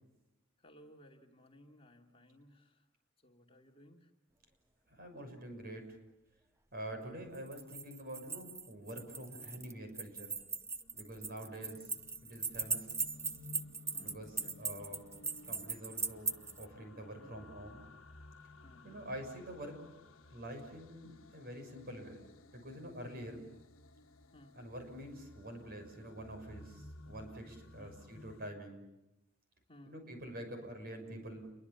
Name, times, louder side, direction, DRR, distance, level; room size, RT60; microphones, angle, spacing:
voice 1, 0.6-2.8 3.2-4.1 6.9-7.4 9.4-9.7 11.5-11.8 13.9-15.0 17.2-17.5 18.6-19.0 24.3-24.6 27.8-28.0 29.7-30.0, left 1 dB, 30° left, 1 dB, 2.6 m, -60 dB
voice 2, 4.9-5.8 6.7-10.4 10.9-11.8 12.2-12.9 14.0-15.0 15.3-17.8 18.8-19.8 20.3-22.2 22.5-23.4 24.5-28.9 29.9-31.5, right 1 dB, 50° right, 5 dB, 6.5 m, -46 dB
sound 1, 7.3-16.7, right 4 dB, 15° right, 0.8 m, -39 dB
sound 2, 10.5-28.5, left 2 dB, 75° left, 1.4 m, -57 dB
29.5 x 23.0 x 7.1 m, 0.94 s
head